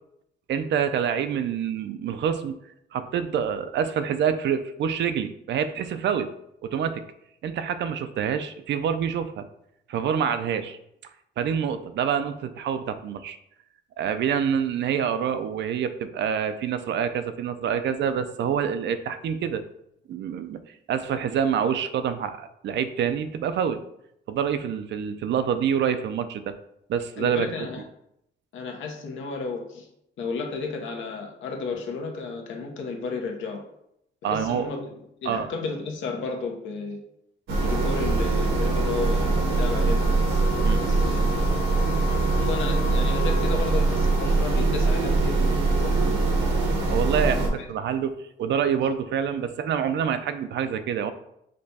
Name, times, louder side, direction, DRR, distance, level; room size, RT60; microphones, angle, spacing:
voice 1, 0.5-2.6 2.9-6.3 6.6-7.0 7.4-9.5 9.9-10.8 11.4-13.4 14.0-19.6 20.1-20.6 20.9-23.8 24.3-26.5 26.9-27.7 34.2-34.7 35.3-35.5 40.6-40.8 46.9-51.1, right 8 dB, 65° right, 10 dB, 0.5 m, -26 dB
voice 2, 27.2-27.8 28.5-29.9 30.2-33.6 34.2-34.9 35.2-37.0 37.5-41.3 42.1-45.6 45.8-46.2 46.7-47.6, left 4 dB, 75° left, 2 dB, 0.9 m, -33 dB
sound 1, 37.5-47.5, right 3 dB, 80° right, 1.1 m, -22 dB
5.2 x 2.2 x 4.1 m, 0.78 s
cardioid pair, 90°, 20 cm